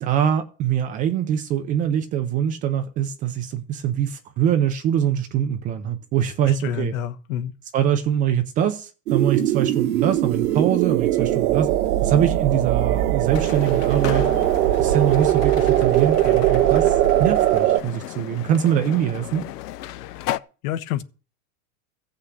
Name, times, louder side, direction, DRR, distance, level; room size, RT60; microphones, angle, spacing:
voice 1, 0.0-6.9 7.7-11.7 12.0-14.3 14.8-19.5, right 9 dB, 20° right, 0.5 m, -23 dB
voice 2, 6.4-7.5 20.6-21.0, left 11 dB, 60° left, 1.3 m, -28 dB
sound 1, 9.1-17.8, right 13 dB, 85° right, 2.0 m, -20 dB
sound 2, 13.3-20.4, left 14 dB, 85° left, 0.8 m, -34 dB
15.0 x 5.9 x 8.1 m
supercardioid pair, 165°, 46 cm